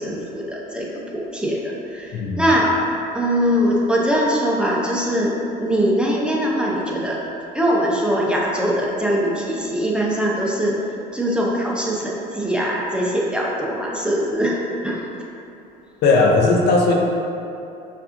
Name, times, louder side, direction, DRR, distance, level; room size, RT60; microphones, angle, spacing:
voice 1, 0.0-7.2 7.5-15.1, equal, 5° right, -4 dB, 0.6 m, -22 dB
voice 2, 2.1-2.4 16.0-16.9, left 3 dB, 60° left, 0 dB, 0.6 m, -16 dB
5.4 x 2.6 x 2.5 m, 2.7 s
supercardioid pair, 80°, 20 cm